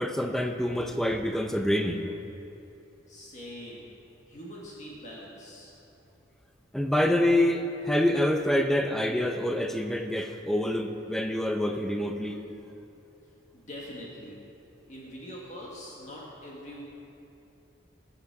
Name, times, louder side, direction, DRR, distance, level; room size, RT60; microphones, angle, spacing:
voice 1, 0.0-2.1 6.7-12.4, left 1 dB, ahead, 5 dB, 0.6 m, -26 dB
voice 2, 3.1-3.9 4.3-5.7 13.5-14.4 14.9-16.8, equal, 40° left, -4 dB, 1.7 m, -43 dB
19.5 x 7.0 x 4.7 m, 2.8 s
head